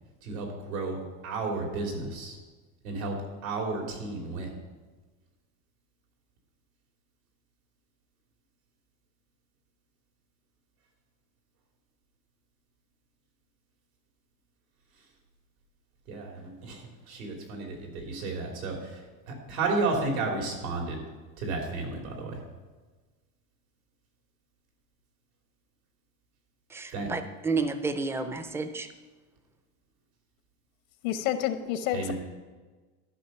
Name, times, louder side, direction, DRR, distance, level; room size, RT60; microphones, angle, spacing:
voice 1, 0.2-2.4 2.8-4.5 16.1-21.0 21.4-22.4 26.9-27.1 31.9-32.1, right 3 dB, 90° right, 1 dB, 3.2 m, -33 dB
voice 2, 26.7-28.9, right 4 dB, 5° right, 10 dB, 0.3 m, -31 dB
voice 3, 31.0-32.1, left 11 dB, 85° left, 10 dB, 1.0 m, -29 dB
12.5 x 5.5 x 5.7 m, 1.3 s
supercardioid pair, 130°, 41 cm